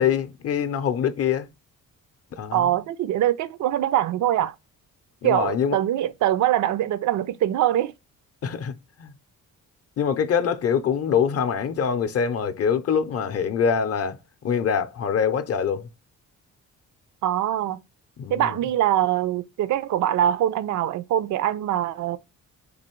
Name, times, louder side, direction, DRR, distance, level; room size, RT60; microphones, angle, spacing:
voice 1, 0.0-1.5 2.3-2.7 5.2-5.8 8.4-9.1 10.0-15.9 18.2-18.6, left 7 dB, 50° left, 0.6 m, -24 dB
voice 2, 2.5-4.5 5.2-7.9 17.2-17.8 18.3-22.2, right 12 dB, 65° right, 0.4 m, -23 dB
4.0 x 3.0 x 4.3 m
cardioid pair, 125°, 32 cm